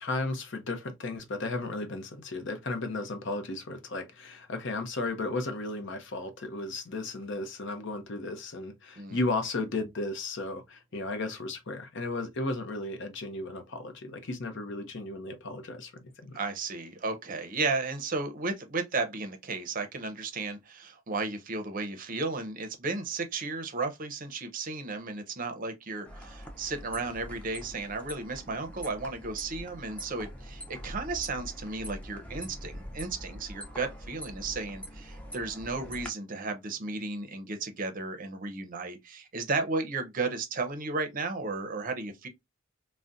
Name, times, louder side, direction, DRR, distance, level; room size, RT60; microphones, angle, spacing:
voice 1, 0.0-15.9 16.2-16.4, left 2 dB, 60° left, 0.7 m, -34 dB
voice 2, 16.3-42.3, right 3 dB, 40° right, 0.6 m, -34 dB
sound 1, 26.0-36.1, equal, 5° left, 0.5 m, -44 dB
3.9 x 2.1 x 2.4 m
head